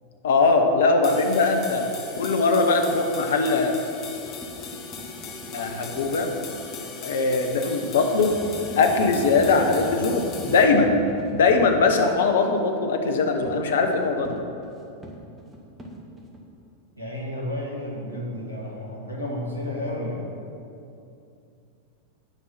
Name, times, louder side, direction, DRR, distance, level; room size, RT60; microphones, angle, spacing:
voice 1, 0.2-3.7 5.5-6.3 7.0-8.3 8.8-11.0 11.3-14.3, left 3 dB, 60° left, 4 dB, 0.9 m, -21 dB
sound 1, 1.0-10.6, left 5 dB, 35° left, 1.2 m, -38 dB
sound 2, 4.0-6.9 8.2-11.9 13.5-16.4, right 1 dB, 15° right, 1.1 m, -41 dB
voice 2, 17.0-20.3, left 1 dB, 85° left, -2 dB, 1.5 m, -32 dB
9.2 x 5.4 x 5.9 m, 2.7 s
figure-of-eight pair, 90°, 0 cm